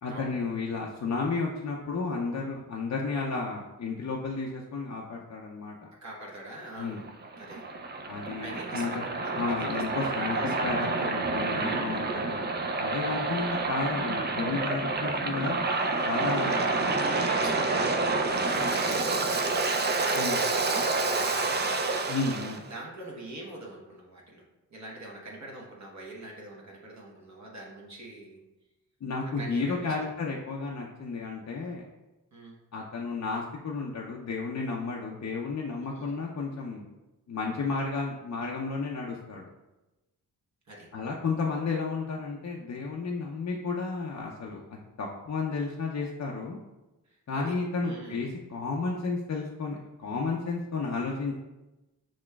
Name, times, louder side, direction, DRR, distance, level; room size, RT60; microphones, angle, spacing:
voice 1, 0.0-5.9 6.8-7.0 8.1-8.9 9.4-12.5 12.8-15.6 16.1-16.6 20.1-20.4 22.1-22.6 29.0-31.9 32.7-36.9 37.3-39.5 40.9-46.6 47.3-51.3, left 4 dB, 45° left, -2 dB, 0.5 m, -32 dB
voice 2, 6.0-7.0 7.4-7.6 8.4-10.9 13.0-13.7 16.2-22.0 22.4-24.4 24.7-28.4 29.4-30.1 32.3-32.6 35.9-36.2 40.7-40.9 47.1-47.6 47.8-48.3, right 1 dB, 45° right, -3 dB, 1.0 m, -44 dB
Waves surf, 6.8-22.6, right 3 dB, 25° right, 0.4 m, -28 dB
5.9 x 2.2 x 2.3 m, 1.0 s
supercardioid pair, 45°, 40 cm